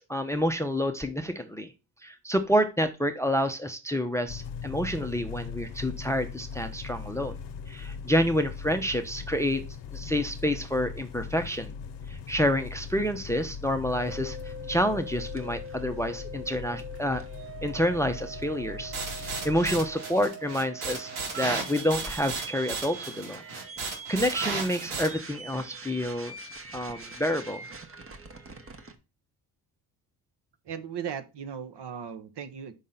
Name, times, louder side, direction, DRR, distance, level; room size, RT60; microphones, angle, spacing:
voice 1, 0.0-1.7 2.0-7.4 7.7-9.6 9.9-11.7 12.1-17.2 17.6-21.1 21.3-23.4 23.8-26.3 26.7-27.6, equal, 5° left, 0.6 m, -28 dB
sound 1, 4.3-19.9, left 6 dB, 60° left, 0.8 m, -40 dB
sound 2, 13.9-29.0, right 3 dB, 25° right, 0.9 m, -43 dB
sound 3, 18.9-25.1, right 4 dB, 80° right, 2.6 m, -35 dB
voice 2, 30.6-32.7, right 7 dB, 55° right, 0.9 m, -37 dB
5.5 x 3.7 x 5.5 m
cardioid pair, 95°, 49 cm